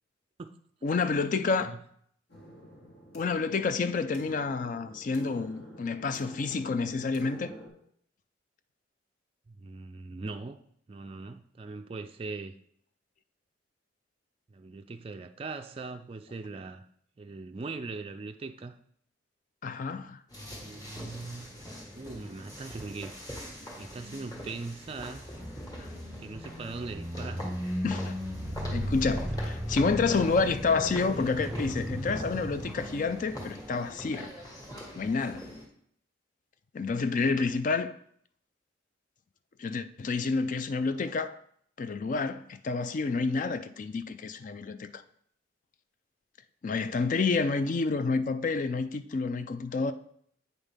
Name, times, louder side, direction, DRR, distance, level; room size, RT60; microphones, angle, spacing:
voice 1, 0.8-1.7 3.1-7.5 19.6-20.2 25.8-25.9 27.8-28.1 28.7-34.3 35.0-35.5 36.7-38.0 39.6-41.3 41.8-45.0 46.6-49.9, left 4 dB, 45° left, 0.4 m, -29 dB
voice 2, 1.3-1.8 9.5-10.6 10.9-12.5 14.5-16.9 17.2-18.8 20.5-21.5 21.9-23.1 23.8-25.2 26.2-27.5, right 3 dB, 30° right, 0.3 m, -40 dB
sound 1, 2.3-7.7, equal, 60° left, 1.6 m, -49 dB
sound 2, 20.3-35.6, equal, 20° left, 1.5 m, -44 dB
sound 3, 25.1-33.9, equal, ahead, 1.6 m, -36 dB
8.1 x 5.5 x 3.5 m
head